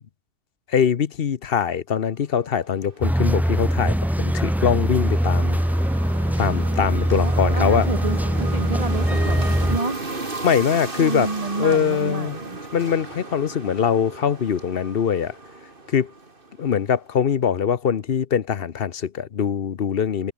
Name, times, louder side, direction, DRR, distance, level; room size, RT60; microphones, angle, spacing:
voice 1, 0.7-5.6 6.4-7.9 10.4-11.3 11.6-12.4 12.7-15.3 15.9-16.1 16.6-20.3, left 7 dB, 55° left, 1.0 m, -22 dB
sound 1, 2.5-16.9, right 3 dB, 50° right, 3.0 m, -35 dB
sound 2, 3.0-9.8, equal, ahead, 0.5 m, -22 dB
voice 2, 7.1-9.4 9.6-10.0 11.0-12.6, right 3 dB, 30° right, 1.5 m, -29 dB
omnidirectional pair, 1.2 m